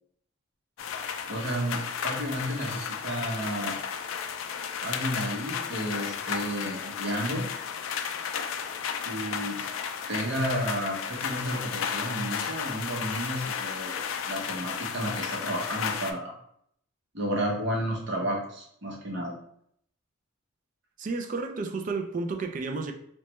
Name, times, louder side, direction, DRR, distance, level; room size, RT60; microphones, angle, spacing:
sound 1, 0.8-16.1, left 7 dB, 75° left, 0.3 m, -33 dB
voice 1, 1.3-3.8 4.8-7.5 9.0-9.6 10.1-16.3 17.1-19.3, equal, 60° right, 0.8 m, -32 dB
voice 2, 21.0-22.9, right 3 dB, 40° right, 0.3 m, -31 dB
3.1 x 2.2 x 2.9 m
head